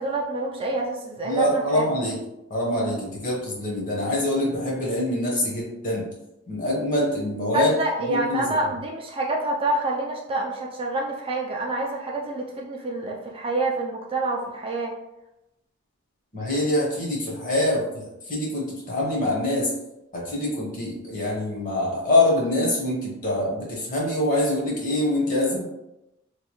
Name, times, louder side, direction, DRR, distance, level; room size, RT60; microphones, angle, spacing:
voice 1, 0.0-1.8 7.5-14.9, right 2 dB, 25° right, -1 dB, 0.4 m, -27 dB
voice 2, 1.2-2.2 2.5-6.0 6.5-8.5 16.3-19.7 20.1-25.7, left 1 dB, 40° left, -4 dB, 1.0 m, -25 dB
3.2 x 2.3 x 3.0 m, 0.91 s
head